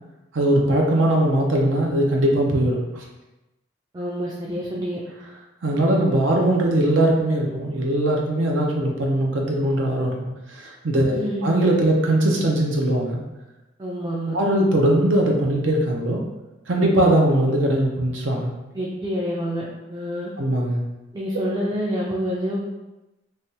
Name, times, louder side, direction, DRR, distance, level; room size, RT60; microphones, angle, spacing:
voice 1, 0.3-3.0 5.6-13.2 14.3-16.2 16.7-18.5 20.4-20.8, right 1 dB, 80° right, 0 dB, 0.6 m, -20 dB
voice 2, 3.9-5.0 11.0-11.4 13.8-14.4 18.7-20.3 21.1-22.6, equal, 20° right, -5 dB, 0.3 m, -27 dB
3.3 x 2.3 x 2.7 m, 1.0 s
head